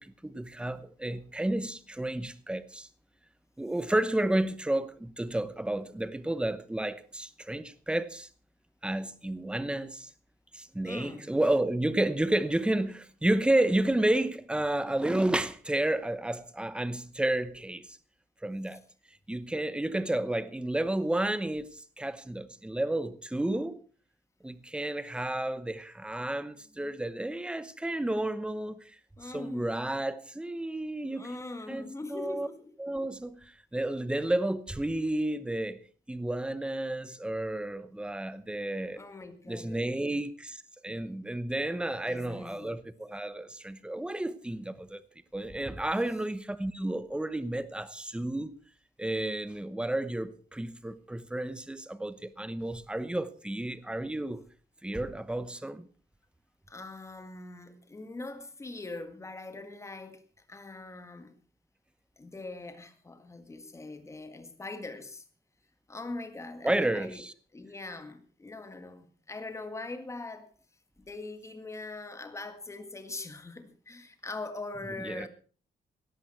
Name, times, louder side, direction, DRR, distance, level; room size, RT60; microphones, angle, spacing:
voice 1, 0.0-2.9 3.6-8.3 8.8-10.1 10.5-18.0 18.4-18.8 19.3-23.8 24.4-29.0 29.2-31.3 31.7-32.5 32.8-35.8 36.1-39.0 39.5-45.0 45.3-48.5 49.0-54.4 54.8-55.9 66.6-67.3 75.0-75.3, right 1 dB, 5° right, 0.9 m, -31 dB
voice 2, 10.8-11.3 29.2-29.8 31.1-32.7 39.0-40.1 42.0-42.8 56.7-60.2 60.5-61.3 62.2-65.3 65.9-67.2 67.5-70.5 71.0-75.3, left 2 dB, 15° left, 1.8 m, -42 dB
17.5 x 13.0 x 4.5 m
wide cardioid pair, 175°, 17 cm